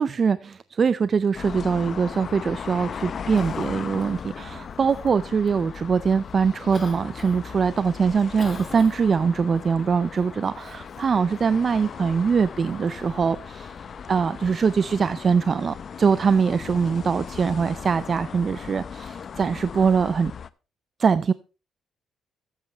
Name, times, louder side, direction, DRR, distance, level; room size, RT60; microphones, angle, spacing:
voice 1, 0.0-13.8 14.1-20.3 21.0-21.3, right 6 dB, 45° right, 0.5 m, -23 dB
sound 1, 1.3-20.5, left 7 dB, 50° left, 0.7 m, -37 dB
Cough, 2.9-17.4, left 3 dB, 25° left, 2.8 m, -50 dB
13.5 x 8.2 x 4.4 m
cardioid pair, 90°, 0 cm